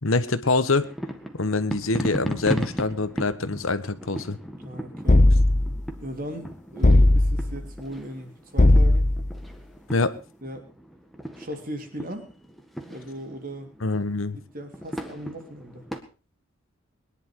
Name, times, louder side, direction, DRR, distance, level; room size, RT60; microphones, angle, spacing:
voice 1, 0.0-0.9 1.4-4.4 9.9-10.1 13.8-14.4, left 3 dB, 80° left, 12 dB, 1.3 m, -25 dB
sound 1, 0.8-16.0, equal, ahead, 1.6 m, -37 dB
voice 2, 4.6-5.3 6.0-9.1 10.4-10.7 11.4-12.3 12.9-13.7 14.3-15.9, equal, 40° right, 5 dB, 3.2 m, -38 dB
sound 2, 5.1-5.8 6.8-7.6 8.6-9.3, left 1 dB, 35° left, 0.6 m, -17 dB
21.5 x 11.0 x 4.7 m, 0.34 s
head